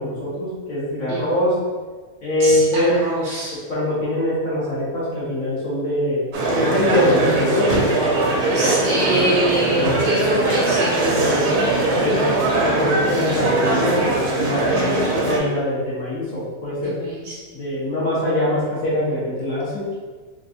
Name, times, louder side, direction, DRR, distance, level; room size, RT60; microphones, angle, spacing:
voice 1, 0.0-1.5 2.2-2.9 3.7-6.2 6.6-7.7 11.0-11.5 12.0-12.2 12.6-14.8 15.2-17.0 17.5-19.9, left 1 dB, 65° left, -9 dB, 1.6 m, -23 dB
voice 2, 1.1-1.5 2.4-3.5 8.5-10.9 12.1-12.3 14.7-15.1 16.8-17.4, right 1 dB, 60° right, -5 dB, 0.9 m, -25 dB
sound 1, 6.3-15.4, right 2 dB, 90° right, 1.2 m, -20 dB
3.8 x 2.4 x 2.6 m, 1.4 s
omnidirectional pair, 1.6 m